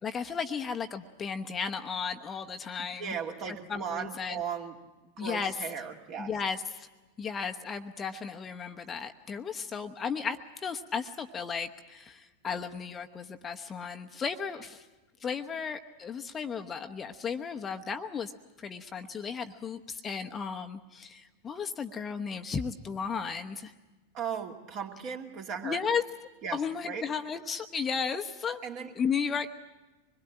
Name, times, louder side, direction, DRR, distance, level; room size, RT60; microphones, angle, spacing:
voice 1, 0.0-3.2 3.7-4.4 5.2-5.7 6.2-6.9 7.2-14.9 15.2-18.3 18.6-23.7 25.6-26.0 26.5-28.6 29.0-29.5, left 6 dB, 20° left, 5 dB, 1.0 m, -34 dB
voice 2, 3.0-4.8 5.2-6.3 24.1-25.8 26.4-26.6 26.9-27.0 28.6-28.9, right 7 dB, 40° right, 2 dB, 2.5 m, -36 dB
25.0 x 21.5 x 8.9 m, 1.1 s
figure-of-eight pair, 90°, 0 cm